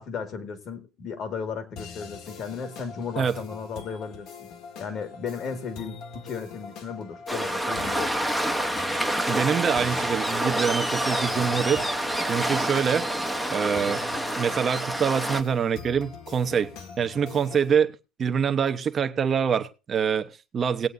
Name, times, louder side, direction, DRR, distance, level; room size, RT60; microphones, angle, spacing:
voice 1, 0.0-4.5 4.8-8.3, left 6 dB, 45° left, 2.0 m, -35 dB
sound 1, 1.8-17.8, left 5 dB, 60° left, 1.7 m, -43 dB
Waves surf, 7.3-15.4, right 1 dB, ahead, 0.9 m, -27 dB
voice 2, 9.3-13.1 13.5-14.0 14.4-17.9 18.2-20.9, right 7 dB, 30° right, 1.0 m, -25 dB
19.5 x 8.3 x 2.7 m
supercardioid pair, 130°, 0 cm